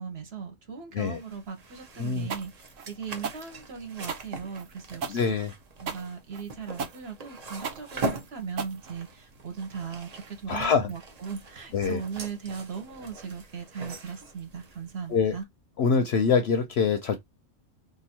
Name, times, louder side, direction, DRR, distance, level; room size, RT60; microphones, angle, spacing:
voice 1, 0.0-5.3 5.8-15.5, right 6 dB, 55° right, 1.2 m, -38 dB
sound 1, 1.1-15.4, right 3 dB, 40° right, 0.7 m, -41 dB
sound 2, 2.3-9.4, right 5 dB, 85° right, 1.1 m, -37 dB
voice 2, 5.1-5.5 10.5-10.9 11.7-12.0 15.1-15.4 15.8-17.2, left 5 dB, 65° left, 0.8 m, -24 dB
2.8 x 2.5 x 4.3 m
omnidirectional pair, 1.3 m